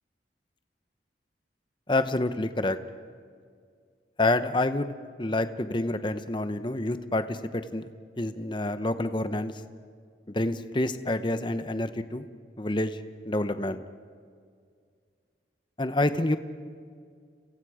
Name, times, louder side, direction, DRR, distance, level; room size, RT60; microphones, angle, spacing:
voice 1, 1.9-2.8 4.2-4.9 5.2-7.9 8.2-9.6 10.3-12.3 12.6-13.0 13.3-13.8 15.8-16.4, left 2 dB, 25° left, 10 dB, 0.9 m, -28 dB
30.0 x 28.0 x 5.0 m, 2.1 s
head